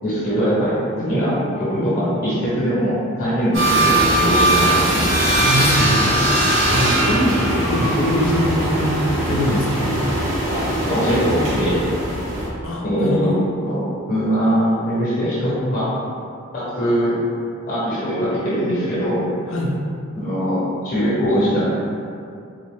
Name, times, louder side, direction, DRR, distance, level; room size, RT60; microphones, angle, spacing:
voice 1, 0.0-5.2 10.5-11.8 12.8-13.3 13.6-15.9 16.5-17.2 17.7-19.2 20.1-21.6, equal, 40° left, -10 dB, 1.0 m, -21 dB
sound 1, 3.5-12.5, right 1 dB, 60° right, 0.8 m, -20 dB
voice 2, 5.3-9.0 9.2-10.0 12.6-13.5 19.5-19.8, equal, 70° left, -2 dB, 0.6 m, -23 dB
3.8 x 2.1 x 3.1 m, 2.4 s
head